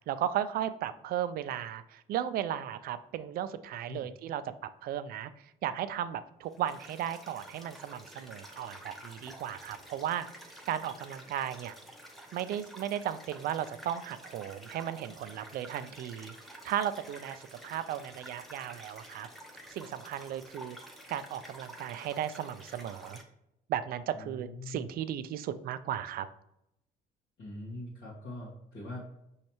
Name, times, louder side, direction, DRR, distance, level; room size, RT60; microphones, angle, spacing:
voice 1, 0.1-4.4 4.8-5.3 5.6-10.3 10.7-11.7 12.3-19.3 19.7-20.8 21.1-23.2 23.7-26.3, right 10 dB, 60° right, 13 dB, 0.4 m, -35 dB
sound 1, 6.5-23.2, right 1 dB, ahead, 0.7 m, -50 dB
voice 2, 24.1-24.9 27.4-29.0, left 2 dB, 70° left, -8 dB, 1.5 m, -43 dB
5.6 x 3.1 x 3.0 m, 0.82 s
cardioid pair, 110°, 17 cm